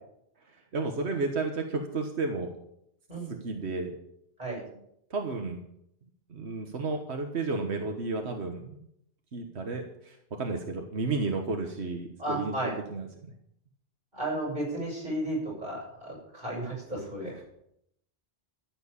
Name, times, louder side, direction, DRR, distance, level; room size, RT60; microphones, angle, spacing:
voice 1, 0.7-2.5 3.4-3.9 5.1-5.6 6.3-8.8 9.3-13.1 17.2-17.5, right 3 dB, 90° right, 4 dB, 1.7 m, -32 dB
voice 2, 12.2-12.7 14.1-17.3, right 1 dB, 45° right, -4 dB, 7.5 m, -33 dB
14.0 x 8.0 x 8.6 m, 0.75 s
omnidirectional pair, 1.1 m